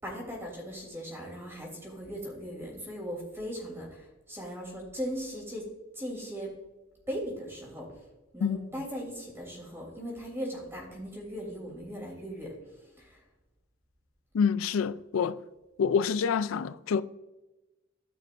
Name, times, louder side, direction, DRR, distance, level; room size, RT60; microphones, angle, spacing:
voice 1, 0.0-5.7 5.9-6.5 7.1-8.0 8.3-13.2, equal, 10° right, 2.9 m, -38 dB
voice 2, 14.3-15.4 15.8-17.0, left 6 dB, 90° left, 0.4 m, -27 dB
14.0 x 5.6 x 2.5 m
head